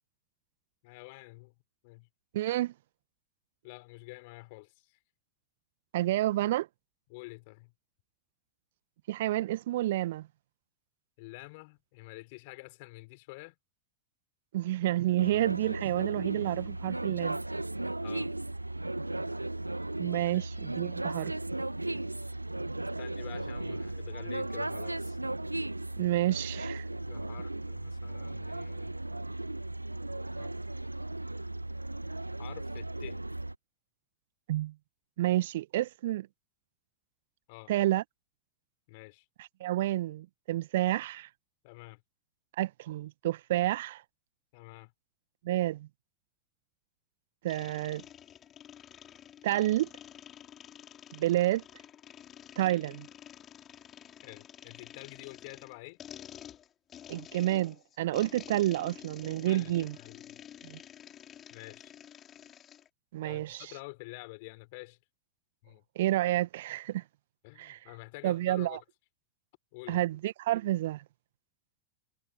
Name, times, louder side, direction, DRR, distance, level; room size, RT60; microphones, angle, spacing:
voice 1, 0.8-1.5 1.8-2.1 3.6-5.0 7.1-7.7 11.2-13.5 18.0-18.3 20.3-20.5 21.8-22.3 23.0-25.2 27.1-29.0 30.4-30.5 32.4-33.2 37.5-37.7 38.9-39.2 41.6-42.0 44.5-44.9 54.2-56.0 59.4-60.4 61.5-61.9 63.2-65.0 65.6-65.8 67.4-68.8 69.7-70.0, left 26 dB, 50° left, 5.0 m, -48 dB
voice 2, 2.3-2.7 5.9-6.7 9.1-10.3 14.5-17.4 20.0-21.3 26.0-26.8 34.5-34.7 35.2-36.3 37.7-38.0 39.4-41.3 42.6-44.0 45.4-45.9 47.4-48.0 49.4-49.9 51.1-51.6 52.6-53.1 57.1-59.9 60.6-60.8 63.1-63.7 65.9-67.0 67.6-67.8 68.2-68.8 69.9-71.0, right 15 dB, 55° right, 1.5 m, -29 dB
sound 1, 15.2-33.6, right 2 dB, 85° right, 1.5 m, -36 dB
sound 2, 47.5-62.9, left 10 dB, 25° left, 6.4 m, -50 dB
figure-of-eight pair, 90°, 0 cm